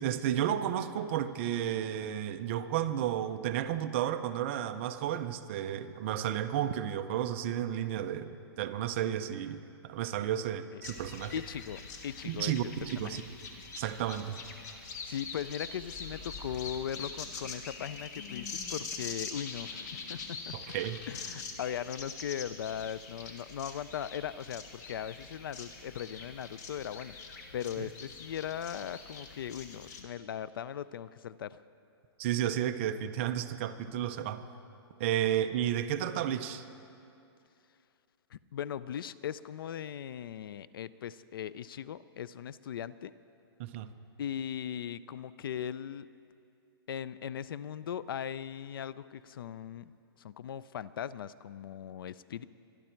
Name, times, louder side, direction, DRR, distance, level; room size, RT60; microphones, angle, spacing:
voice 1, 0.0-11.3 12.2-13.2 13.8-14.4 20.5-21.0 27.8-27.9 32.2-34.4 35.0-36.6 43.6-43.9, right 10 dB, 30° right, 9 dB, 0.5 m, -32 dB
sound 1, 10.8-30.0, left 4 dB, 40° left, 1.5 m, -44 dB
voice 2, 11.3-13.2 15.0-20.5 21.1-31.6 38.3-43.1 44.2-46.1 46.9-49.9 50.2-52.4, left 9 dB, 60° left, 17 dB, 0.4 m, -39 dB
24.5 x 11.0 x 4.5 m, 2.5 s
hypercardioid pair, 165°, 13 cm